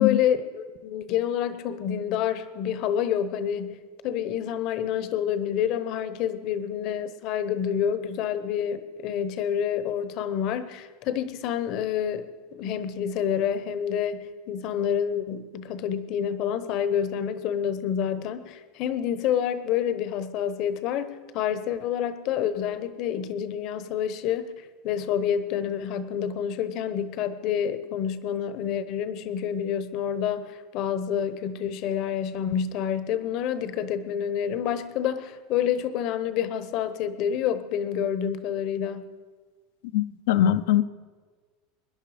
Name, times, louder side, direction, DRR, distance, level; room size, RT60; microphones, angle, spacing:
voice 1, 0.0-3.8 4.0-39.1, left 9 dB, 40° left, 13 dB, 0.9 m, -28 dB
voice 2, 39.9-40.8, left 12 dB, 70° left, 13 dB, 0.7 m, -21 dB
24.0 x 11.0 x 5.0 m, 1.5 s
supercardioid pair, 165°, 0 cm